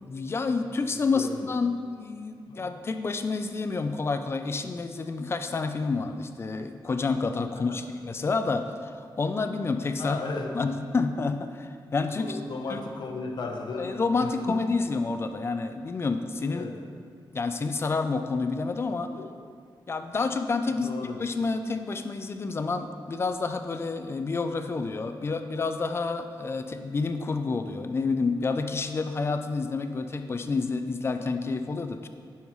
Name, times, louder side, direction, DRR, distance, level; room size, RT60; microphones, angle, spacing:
voice 1, 0.0-10.2 10.5-12.4 12.7-12.8 13.8-16.7 17.3-19.1 19.9-20.9 21.2-32.1, left 4 dB, 30° left, 8 dB, 0.4 m, -29 dB
voice 2, 1.1-1.5 2.5-2.7 7.5-7.8 10.0-10.7 12.1-14.6 16.5-16.8 19.1-19.3 20.8-21.2, left 3 dB, 60° left, 3 dB, 0.8 m, -36 dB
10.5 x 5.6 x 3.1 m, 2.1 s
wide cardioid pair, 165°, 8 cm